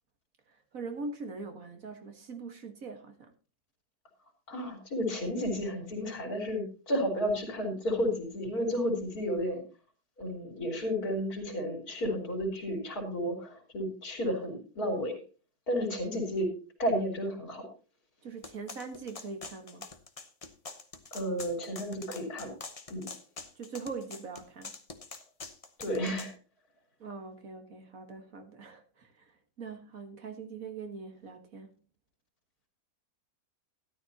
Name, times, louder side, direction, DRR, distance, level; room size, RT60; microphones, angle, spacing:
voice 1, 0.7-3.3 18.2-19.9 23.6-24.8 27.0-31.8, right 4 dB, 60° right, 1.9 m, -42 dB
voice 2, 4.5-9.6 10.2-15.2 15.7-16.5 16.8-17.7 21.1-22.5 22.9-23.1 25.8-26.3, equal, 70° left, 3.9 m, -32 dB
sound 1, 18.4-26.3, left 4 dB, 30° left, 0.9 m, -45 dB
13.0 x 12.0 x 2.9 m
omnidirectional pair, 1.6 m